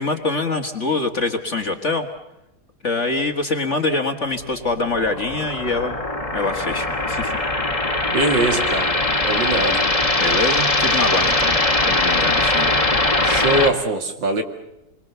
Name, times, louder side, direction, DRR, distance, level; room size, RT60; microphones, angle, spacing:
voice 1, 0.0-2.1 2.8-6.0 6.3-7.3 10.2-11.6 11.9-12.7, left 3 dB, 35° left, 5 dB, 1.8 m, -24 dB
sound 1, 4.4-13.7, left 2 dB, 15° left, 1.9 m, -21 dB
voice 2, 8.1-9.0 9.3-9.8 13.2-14.4, right 2 dB, 60° right, 5 dB, 2.9 m, -22 dB
28.0 x 23.0 x 6.9 m, 0.90 s
omnidirectional pair, 2.3 m